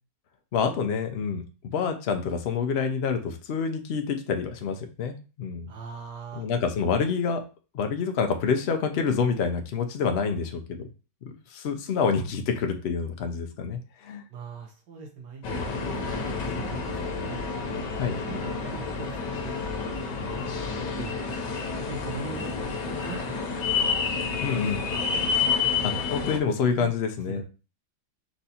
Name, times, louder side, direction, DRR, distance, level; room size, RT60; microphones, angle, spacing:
voice 1, 0.5-5.7 6.3-7.4 7.7-10.8 11.5-14.2 18.0-18.1 24.4-24.8 25.8-27.4, left 5 dB, 60° left, 5 dB, 0.7 m, -27 dB
voice 2, 5.7-6.4 14.3-15.9 16.2-17.4 18.2-21.4 21.9-22.5 22.8-23.7 24.2-24.7 25.9-26.0 26.4-26.9 27.3-27.4, right 4 dB, 80° right, 2 dB, 1.7 m, -41 dB
sound 1, 15.4-26.4, left 5 dB, 85° left, 1.5 m, -29 dB
4.5 x 2.7 x 4.2 m, 0.33 s
omnidirectional pair, 1.8 m